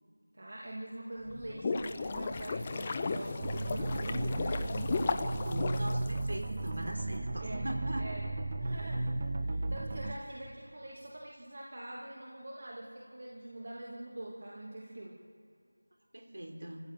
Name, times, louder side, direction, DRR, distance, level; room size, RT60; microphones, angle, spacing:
voice 1, 0.3-4.7 7.4-7.7 8.0-8.3 8.6-15.2, right 1 dB, 40° right, -3 dB, 2.6 m, -44 dB
sound 1, 1.3-6.7, left 3 dB, 15° left, 0.6 m, -35 dB
sound 2, 3.4-10.1, right 2 dB, 25° right, 0.8 m, -35 dB
voice 2, 5.3-8.1 16.1-16.8, right 1 dB, 55° right, 2 dB, 4.3 m, -40 dB
27.0 x 15.0 x 7.9 m, 2.4 s
figure-of-eight pair, 175°, 0 cm